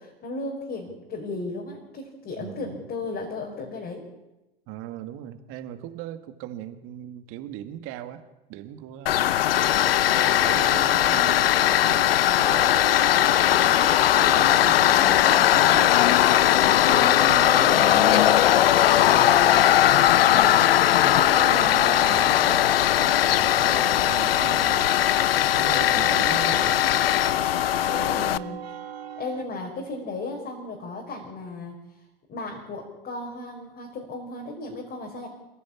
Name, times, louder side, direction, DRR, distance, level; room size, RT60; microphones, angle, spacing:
voice 1, 0.0-4.0 13.5-13.9 20.3-20.7 21.5-21.9 28.1-28.6 29.2-31.8 32.3-35.3, left 2 dB, 30° left, 0 dB, 5.4 m, -35 dB
voice 2, 2.4-2.9 4.7-9.4 10.4-11.5 11.8-12.6 14.2-18.4 19.1-19.4 21.0-25.1 25.6-26.8, right 11 dB, 45° right, 9 dB, 2.1 m, -39 dB
Tools, 9.1-28.4, left 12 dB, 70° left, 0.9 m, -19 dB
sound 1, 9.8-29.4, right 9 dB, 75° right, 1.5 m, -40 dB
28.0 x 15.5 x 8.7 m, 1.0 s
figure-of-eight pair, 90°, 31 cm